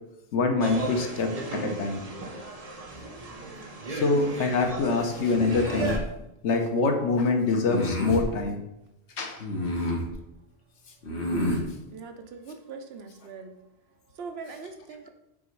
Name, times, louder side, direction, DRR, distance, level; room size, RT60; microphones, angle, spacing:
voice 1, 0.3-2.0 3.9-6.0 6.4-8.6 9.2-9.4, left 3 dB, 85° left, 4 dB, 1.2 m, -25 dB
sound 1, 0.6-6.0, right 3 dB, 35° right, 0.9 m, -36 dB
sound 2, 5.3-6.0 7.6-8.3 9.4-10.1 11.0-11.6, equal, 70° left, 1.5 m, -29 dB
voice 2, 11.9-13.5 14.2-15.1, right 4 dB, 65° right, 6 dB, 0.9 m, -41 dB
6.0 x 4.0 x 4.6 m, 0.88 s
omnidirectional pair, 1.1 m